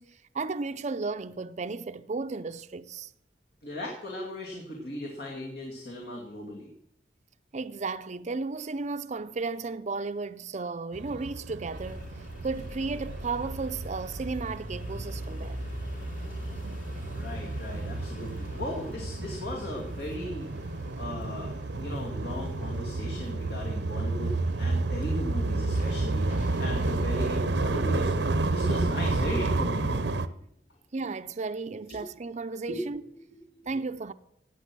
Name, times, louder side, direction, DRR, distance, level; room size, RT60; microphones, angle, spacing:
voice 1, 0.0-3.1 7.5-12.1 12.4-15.6 30.9-33.0 33.7-34.1, right 4 dB, 40° right, 0.5 m, -34 dB
voice 2, 3.6-6.7 17.1-20.5 21.0-30.0 31.9-32.0 32.7-33.7, left 1 dB, 65° left, 2.4 m, -37 dB
sound 1, 10.9-30.3, right 2 dB, 85° right, 0.8 m, -31 dB
sound 2, 11.7-29.9, equal, 50° left, 2.4 m, -43 dB
16.5 x 9.1 x 6.1 m
head